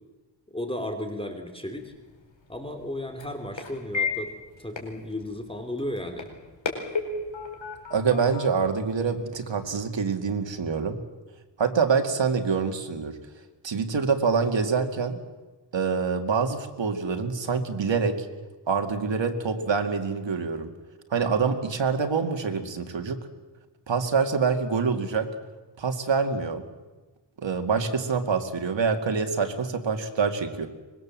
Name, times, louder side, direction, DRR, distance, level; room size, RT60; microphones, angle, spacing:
voice 1, 0.5-1.9 2.5-4.3 4.6-6.3, left 1 dB, 10° left, 5 dB, 3.1 m, -34 dB
sound 1, 1.8-9.6, left 4 dB, 80° left, 4.6 m, -36 dB
voice 2, 7.9-11.0 11.6-13.2 13.6-15.2 15.7-18.3 18.7-20.7 21.1-23.2 23.9-25.3 25.8-26.6 27.4-30.7, right 5 dB, 75° right, 5 dB, 2.3 m, -26 dB
24.5 x 21.5 x 7.5 m, 1.2 s
wide cardioid pair, 80°, 45 cm